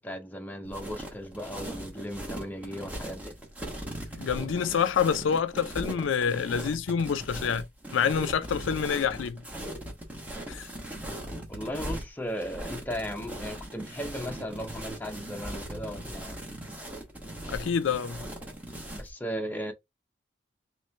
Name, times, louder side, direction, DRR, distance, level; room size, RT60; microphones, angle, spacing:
voice 1, 0.0-3.3 11.5-16.4 18.9-19.7, equal, 10° left, 0.6 m, -36 dB
sound 1, 0.7-19.1, right 1 dB, 10° right, 0.9 m, -39 dB
voice 2, 4.1-7.6 7.9-9.4 10.5-10.7 17.5-18.2, left 7 dB, 80° left, 0.4 m, -27 dB
3.1 x 3.0 x 3.2 m
head